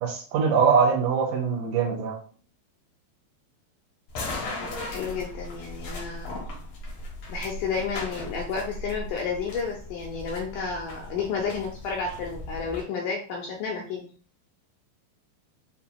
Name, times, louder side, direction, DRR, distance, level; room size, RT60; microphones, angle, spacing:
voice 1, 0.0-2.2, right 6 dB, 85° right, 1 dB, 1.8 m, -22 dB
sound 1, 4.1-12.8, left 2 dB, 65° left, 1.6 m, -37 dB
voice 2, 4.6-6.4 7.3-14.1, left 5 dB, 85° left, 0 dB, 1.8 m, -31 dB
6.9 x 2.8 x 2.2 m, 0.41 s
omnidirectional pair, 4.5 m